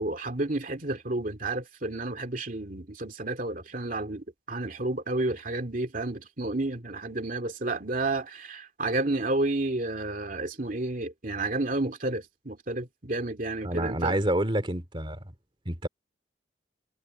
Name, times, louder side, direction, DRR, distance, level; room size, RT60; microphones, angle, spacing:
voice 1, 0.0-14.2, right 2 dB, 50° right, 2.6 m, -31 dB
voice 2, 13.6-15.2 15.7-15.9, right 1 dB, 30° right, 2.7 m, -28 dB
head